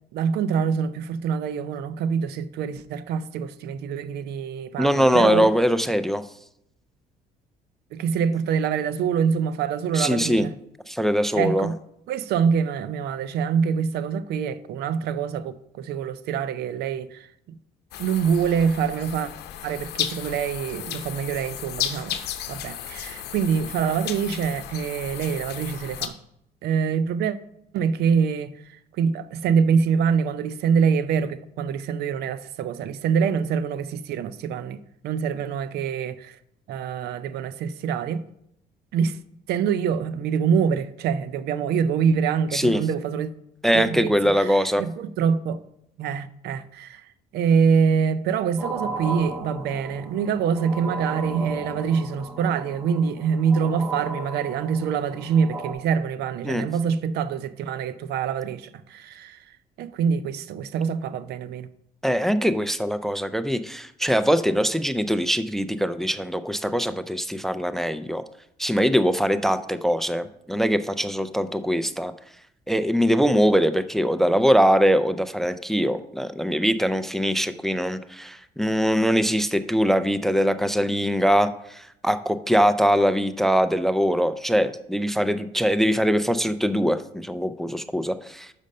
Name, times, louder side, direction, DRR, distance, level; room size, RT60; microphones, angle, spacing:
voice 1, 0.1-5.5 7.9-10.5 11.3-11.8 12.1-17.6 18.0-19.3 19.6-22.2 22.5-26.2 26.6-27.4 27.7-36.4 36.7-38.2 38.9-39.2 39.5-43.3 43.7-45.6 46.0-47.1 47.3-59.4 59.8-61.7, right 6 dB, 75° right, 0.5 m, -25 dB
voice 2, 4.8-6.2 9.9-10.4 10.9-11.7 42.5-42.8 43.6-44.8 56.4-56.6 62.0-68.2 68.6-72.1 72.7-88.5, equal, ahead, 0.4 m, -22 dB
sound 1, 17.9-26.1, left 11 dB, 75° left, 0.7 m, -34 dB
sound 2, 48.6-55.7, right 3 dB, 15° right, 1.0 m, -35 dB
6.3 x 5.3 x 5.3 m
cardioid pair, 110°, 17 cm